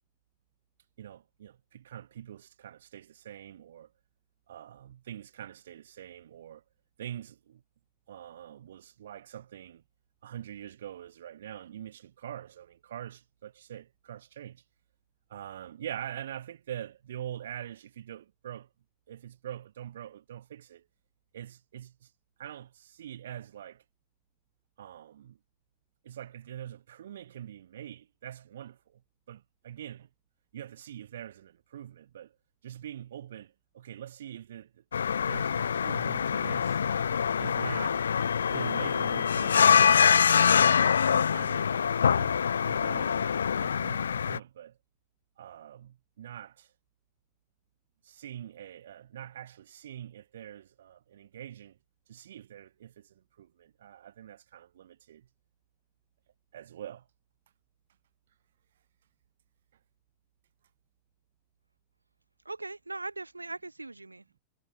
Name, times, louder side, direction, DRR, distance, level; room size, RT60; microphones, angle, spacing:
voice 1, 1.0-3.9 4.5-6.6 7.0-7.6 8.1-9.8 10.2-14.6 15.3-18.7 19.1-20.8 21.3-22.1 22.4-23.8 24.8-25.4 26.0-29.0 29.3-30.1 30.5-32.3 32.6-34.8 35.3-36.8 37.4-38.0 38.5-40.1 41.3-42.4 42.6-43.3 43.6-44.8 45.4-46.7 48.0-51.8 52.1-55.3 56.5-57.0, right 10 dB, 60° right, 6.1 m, -44 dB
sound 1, 34.9-44.4, left 7 dB, 70° left, 0.5 m, -25 dB
voice 2, 62.4-64.4, right 2 dB, 80° right, 2.2 m, -40 dB
figure-of-eight pair, 90°, 0 cm